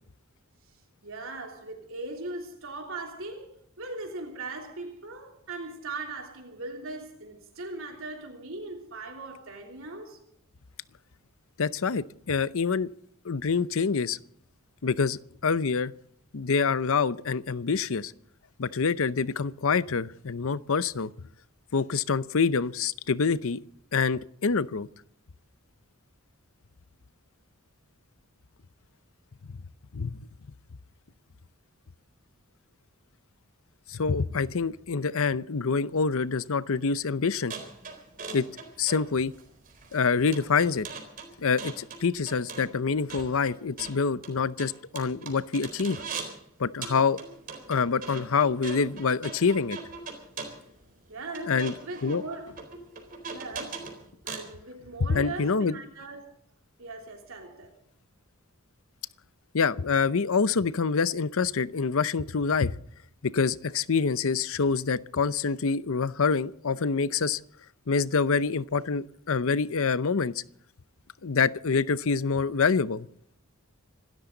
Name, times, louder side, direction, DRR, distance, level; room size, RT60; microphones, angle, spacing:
voice 1, 1.0-3.5 3.8-10.2 51.1-52.6 53.3-53.9 54.2-56.3 56.8-57.7, right 2 dB, 65° right, 3.3 m, -39 dB
voice 2, 11.6-12.9 13.2-14.2 14.8-15.9 16.3-18.1 18.6-21.1 21.7-23.6 23.9-24.9 29.5-29.6 29.9-30.2 33.9-37.5 38.3-38.5 38.8-39.3 39.9-40.9 41.4-46.0 46.6-47.2 47.7-49.8 51.5-51.7 52.0-52.2 55.1-55.8 59.5-62.7 63.2-67.4 67.9-70.3 71.2-73.1, left 5 dB, 65° left, 0.7 m, -26 dB
sound 1, 37.5-46.4 46.8-54.5, right 4 dB, 40° right, 4.0 m, -41 dB
27.0 x 13.0 x 3.9 m
head